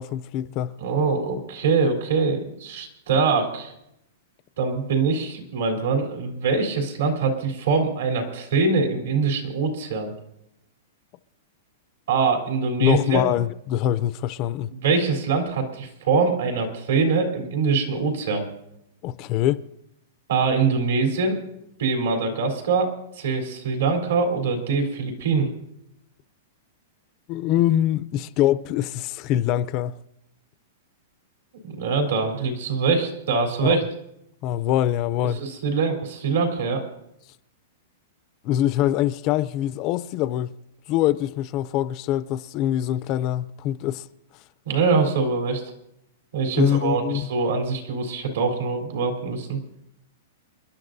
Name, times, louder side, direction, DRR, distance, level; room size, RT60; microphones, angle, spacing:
voice 1, 0.0-0.8 12.8-14.7 19.0-19.6 27.3-30.0 33.6-33.8 34.4-35.4 38.4-40.5 40.9-44.0 46.6-47.3, left 12 dB, 35° left, 0.4 m, -24 dB
voice 2, 0.8-3.7 4.6-10.1 12.1-13.2 14.7-18.4 20.3-21.4 21.8-25.5 31.6-33.8 35.3-36.8 44.7-45.6 46.3-49.6, right 4 dB, 75° right, 3.6 m, -23 dB
28.5 x 11.5 x 2.7 m
supercardioid pair, 160°, 0 cm